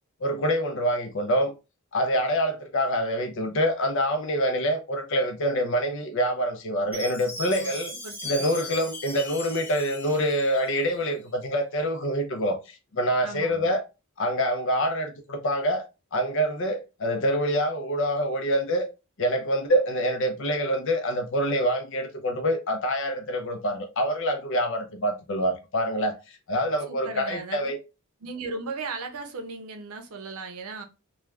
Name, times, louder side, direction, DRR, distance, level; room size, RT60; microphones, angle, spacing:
voice 1, 0.2-1.5 1.9-7.9 8.2-13.8 14.2-15.8 16.1-18.9 19.2-27.8, equal, 60° left, 0.6 m, -26 dB
Chime, 6.9-11.1, left 1 dB, 10° left, 0.7 m, -38 dB
voice 2, 8.0-8.5 13.2-13.7 26.9-27.8 28.2-30.8, right 3 dB, 75° right, 0.6 m, -37 dB
3.2 x 2.3 x 2.3 m
head